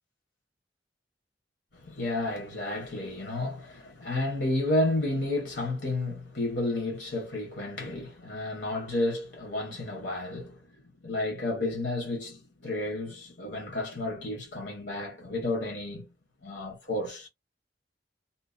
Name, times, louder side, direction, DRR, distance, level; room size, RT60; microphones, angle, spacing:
voice 1, 1.8-10.6 11.0-16.1 16.4-17.3, left 2 dB, 80° left, 0.9 m, -31 dB
2.6 x 2.0 x 2.4 m
head